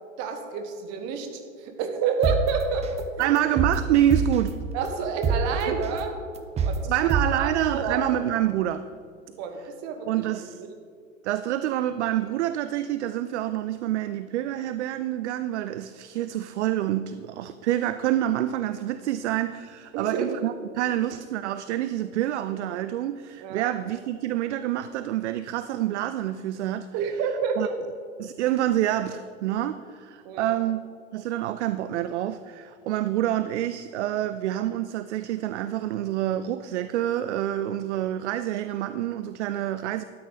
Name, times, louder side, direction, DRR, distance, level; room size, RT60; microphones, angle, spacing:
voice 1, 0.2-3.4 4.7-6.1 6.6-8.1 9.4-10.7 19.9-20.4 23.4-23.7 26.9-27.7 30.2-30.6, right 5 dB, 40° right, 6 dB, 1.5 m, -29 dB
sound 1, 2.2-2.4 2.8-3.0 3.4-4.5 4.9-5.0 5.2-5.4 5.8-6.0 6.4-6.8 7.1-7.2, right 6 dB, 15° right, 0.7 m, -24 dB
voice 2, 3.2-4.6 5.7-5.8 6.9-8.8 10.1-10.6 11.2-26.9 27.6-27.7 28.2-30.9 31.1-40.0, right 12 dB, 65° right, 12 dB, 0.5 m, -27 dB
12.5 x 9.5 x 4.1 m, 2.2 s
hypercardioid pair, 110°, 38 cm